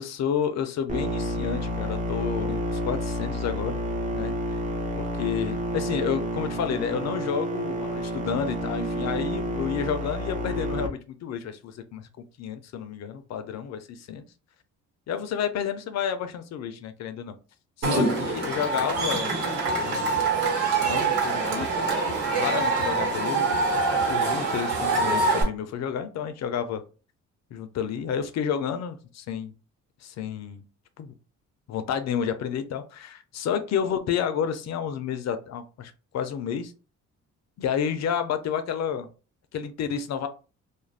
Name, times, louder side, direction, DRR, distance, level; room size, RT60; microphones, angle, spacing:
voice 1, 0.0-3.8 4.1-4.3 5.0-12.1 12.4-14.2 15.1-17.3 17.8-19.3 19.8-20.2 20.8-22.0 22.4-23.6 23.9-26.8 27.5-29.5 30.0-30.6 31.0-31.1 31.7-36.7 37.6-39.1 39.5-40.3, left 8 dB, 60° left, 0.5 m, -30 dB
sound 1, 0.9-10.9, equal, 25° right, 0.7 m, -30 dB
Cheering / Crowd, 17.8-25.4, right 3 dB, 85° right, 1.3 m, -25 dB
2.5 x 2.1 x 3.2 m
cardioid pair, 90°, 30 cm